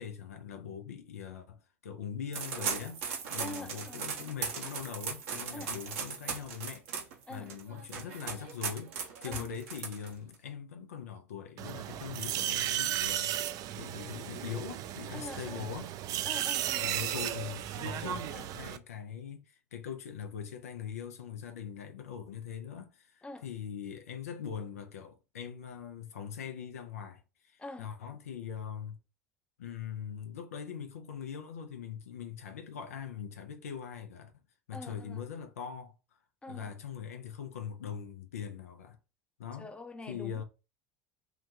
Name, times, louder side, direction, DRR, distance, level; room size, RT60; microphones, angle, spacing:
voice 1, 0.0-3.0 3.3-6.9 7.3-8.9 9.2-13.5 13.8-16.0 16.7-29.0 29.6-34.3 34.7-35.9 36.5-39.0 39.4-39.7 40.1-40.4, left 8 dB, 85° left, 0.5 m, -42 dB
sound 1, 2.3-10.3, right 6 dB, 70° right, 0.9 m, -38 dB
voice 2, 3.3-4.0 5.5-5.7 7.3-7.5 9.3-9.5 15.1-15.7 16.2-16.9 23.2-23.4 27.6-27.9 34.7-35.2 36.4-36.7 39.6-40.4, left 1 dB, 15° left, 0.6 m, -44 dB
sound 2, 11.6-18.8, right 12 dB, 50° right, 0.3 m, -35 dB
2.8 x 2.2 x 2.8 m
hypercardioid pair, 70°, 8 cm